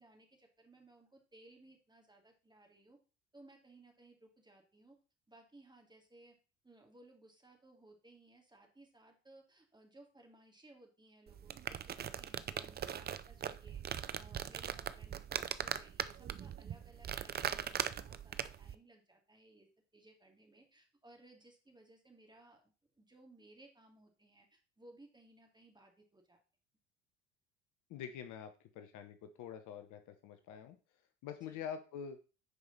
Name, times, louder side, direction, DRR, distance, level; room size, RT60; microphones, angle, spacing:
voice 1, 0.0-3.0 3.3-5.0 5.3-6.4 6.6-26.4 31.4-31.6, right 2 dB, 10° right, 3 dB, 2.4 m, -62 dB
sound 1, 11.3-18.7, right 9 dB, 25° right, 0.5 m, -40 dB
voice 2, 27.9-30.8 31.2-32.2, left 8 dB, 55° left, 8 dB, 1.1 m, -46 dB
9.7 x 4.9 x 4.1 m, 0.34 s
hypercardioid pair, 65°, 36 cm